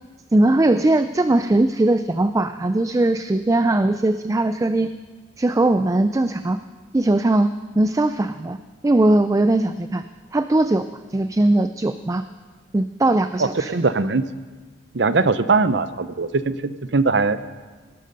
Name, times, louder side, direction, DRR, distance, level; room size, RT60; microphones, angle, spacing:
voice 1, 0.3-4.9 5.4-6.6 6.9-7.5 7.8-8.6 8.8-10.0 10.3-12.2 12.7-13.7, right 2 dB, 20° right, 10 dB, 0.4 m, -19 dB
voice 2, 13.4-14.2 14.9-17.4, right 4 dB, 70° right, 13 dB, 0.7 m, -20 dB
18.5 x 12.0 x 5.5 m, 1.4 s
head